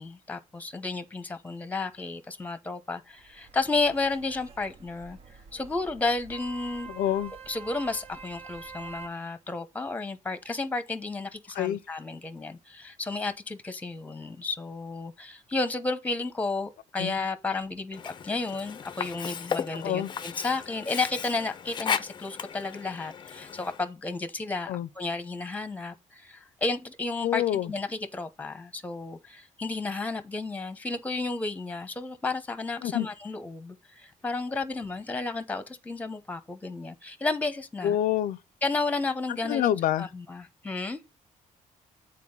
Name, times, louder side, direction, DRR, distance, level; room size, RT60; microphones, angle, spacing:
voice 1, 0.0-6.9 7.5-38.0 38.6-39.7 40.0-41.0, left 3 dB, 10° left, 0.9 m, -32 dB
sound 1, 3.1-9.1, right 5 dB, 45° right, 0.8 m, -46 dB
voice 2, 6.9-7.3 11.5-11.8 17.0-17.1 19.7-20.1 24.7-24.9 27.2-27.7 32.8-33.1 37.8-38.4 39.4-40.1, left 11 dB, 90° left, 0.5 m, -27 dB
Sink (filling or washing), 17.9-23.9, left 7 dB, 35° left, 0.5 m, -35 dB
8.4 x 4.3 x 5.4 m
cardioid pair, 150°, 14 cm